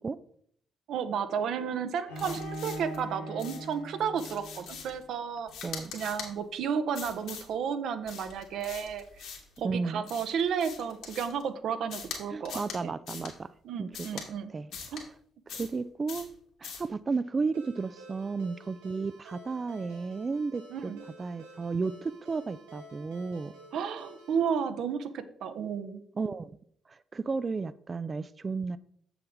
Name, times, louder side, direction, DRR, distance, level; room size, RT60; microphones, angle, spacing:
voice 1, 0.9-5.5 5.9-9.0 9.6-12.9 13.6-14.5 14.9-15.0 20.7-21.0 23.7-26.0, right 7 dB, 60° right, 10 dB, 0.7 m, -32 dB
Bowed string instrument, 2.1-5.0, right 1 dB, 90° left, 1.7 m, -41 dB
sound 1, 2.2-3.0 3.4-3.7 4.2-5.0 5.5-6.3 6.9-7.5 8.1-9.6 10.1-11.4 11.9-12.2 12.5-12.8 13.1-13.3 13.9-14.3 14.7-15.0 15.5-15.8 16.1-16.3 16.6-16.9, left 6 dB, 65° left, 2.1 m, -42 dB
voice 2, 9.6-10.0 12.3-13.5 13.8-14.2 14.5-15.1 15.5-16.3 16.6-20.9 21.2-23.5 26.2-26.6 26.9-28.8, right 4 dB, 35° right, 16 dB, 0.3 m, -33 dB
Ringtone, 17.5-24.4, right 1 dB, 85° right, 3.1 m, -51 dB
7.8 x 7.0 x 3.5 m, 0.63 s
figure-of-eight pair, 45°, 0 cm